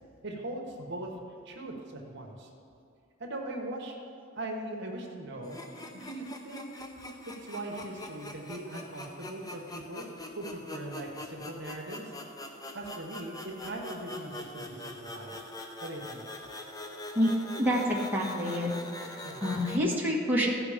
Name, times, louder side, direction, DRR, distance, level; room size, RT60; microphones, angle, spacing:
voice 1, 0.2-1.1 1.4-2.5 3.2-4.0 4.3-5.6 5.9-6.7 7.3-10.0 10.4-12.1 12.7-15.4 15.8-16.2 19.2-19.5, right 1 dB, 60° right, 1 dB, 1.2 m, -40 dB
sound 1, 5.4-19.8, left 1 dB, 20° left, 0.7 m, -43 dB
voice 2, 17.6-18.7 19.1-20.5, equal, 10° right, -4 dB, 1.4 m, -28 dB
14.5 x 5.3 x 5.0 m, 2.6 s
head